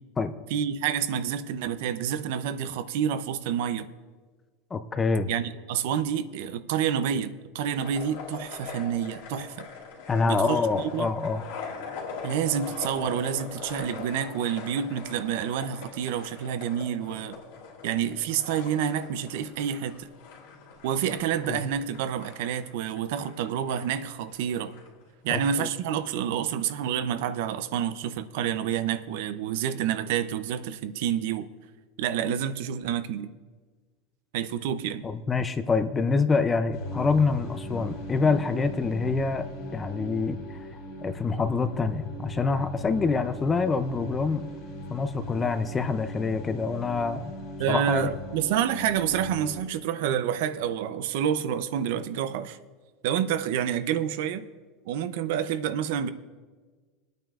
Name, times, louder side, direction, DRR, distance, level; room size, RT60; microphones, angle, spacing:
voice 1, 0.5-3.9 5.3-9.7 10.2-10.6 10.9-11.1 12.2-17.4 17.8-20.1 20.8-24.7 25.2-31.5 32.0-33.3 34.3-35.0 47.6-52.6 53.0-54.5 54.9-56.1, right 9 dB, 70° right, 12 dB, 0.6 m, -28 dB
voice 2, 4.7-5.3 10.1-11.4 21.5-21.6 25.3-25.7 32.2-32.3 35.0-39.5 39.7-40.4 41.0-44.4 44.9-47.3 47.7-48.2, left 4 dB, 15° left, 11 dB, 0.5 m, -26 dB
sound 1, 7.8-25.5, left 5 dB, 90° left, 2.4 m, -42 dB
sound 2, 36.7-49.6, left 1 dB, 60° left, 2.8 m, -39 dB
23.0 x 9.1 x 2.4 m, 1.4 s
supercardioid pair, 160°, 0 cm